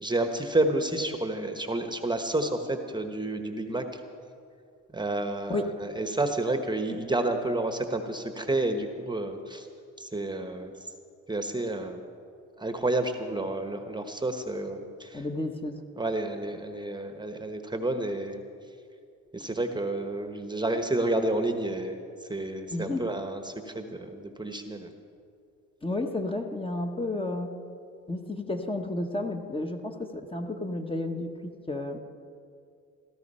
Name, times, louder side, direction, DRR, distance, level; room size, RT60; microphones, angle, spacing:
voice 1, 0.0-4.0 4.9-9.7 10.0-10.9 11.3-12.0 12.6-15.2 16.0-18.4 19.3-24.9, right 2 dB, 15° right, 6 dB, 1.1 m, -30 dB
voice 2, 15.1-15.8 22.7-23.1 25.8-27.5 28.1-32.0, left 2 dB, 15° left, 4 dB, 1.3 m, -32 dB
16.5 x 13.5 x 5.6 m, 2.4 s
cardioid pair, 90°, 30 cm